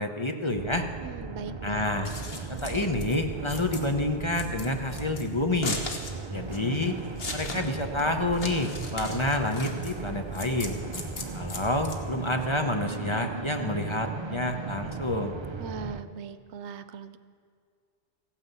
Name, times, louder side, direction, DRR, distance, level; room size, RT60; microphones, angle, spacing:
voice 1, 0.0-0.9 1.6-2.1 2.5-5.8 6.3-7.0 7.3-10.8 11.3-15.4, left 2 dB, 30° left, 5 dB, 0.8 m, -28 dB
sound 1, 0.6-16.0, right 4 dB, 40° right, 0.4 m, -37 dB
voice 2, 1.0-1.9 15.6-17.2, right 5 dB, 80° right, 12 dB, 1.0 m, -39 dB
Scissors, 1.9-12.5, left 3 dB, 60° left, 1.6 m, -39 dB
15.0 x 9.4 x 8.2 m, 2.1 s
omnidirectional pair, 1.1 m